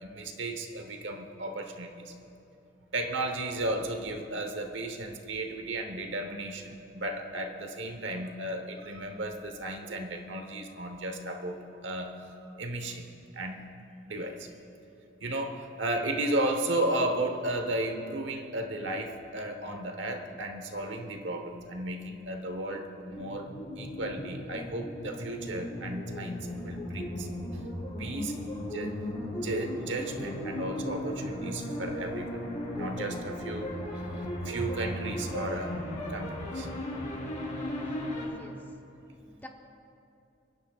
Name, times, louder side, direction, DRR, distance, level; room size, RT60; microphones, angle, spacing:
voice 1, 0.0-2.1 2.9-13.0 13.3-13.6 14.1-14.5 15.2-23.5 23.8-26.4 26.6-27.3 28.0-29.0 29.3-32.4 32.8-35.8 36.1-36.7, right 1 dB, 70° right, 4 dB, 1.1 m, -34 dB
sound 1, 23.1-38.3, left 1 dB, 40° left, 2.6 m, -36 dB
voice 2, 38.2-38.6 39.2-39.5, left 1 dB, 10° left, 2 dB, 0.9 m, -48 dB
26.0 x 10.0 x 2.4 m, 2.6 s
head